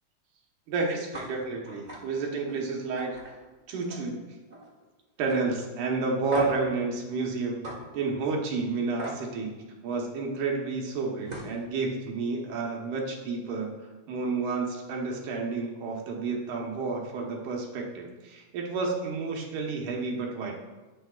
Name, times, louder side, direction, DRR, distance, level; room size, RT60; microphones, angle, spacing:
voice 1, 0.7-3.2 3.7-4.2 5.2-7.7 7.9-9.5 9.8-13.8 14.1-20.6, right 4 dB, 85° right, -1 dB, 2.7 m, -30 dB
sound 1, 1.1-1.3 1.7-2.0 2.4-2.6 3.0-4.1 4.4-4.8 5.3-5.4 6.3-6.7 7.6-7.8 9.0-9.2 10.9-11.0 11.3-11.6, right 1 dB, 35° right, 0.7 m, -37 dB
10.5 x 8.6 x 2.4 m, 1.2 s
omnidirectional pair, 3.5 m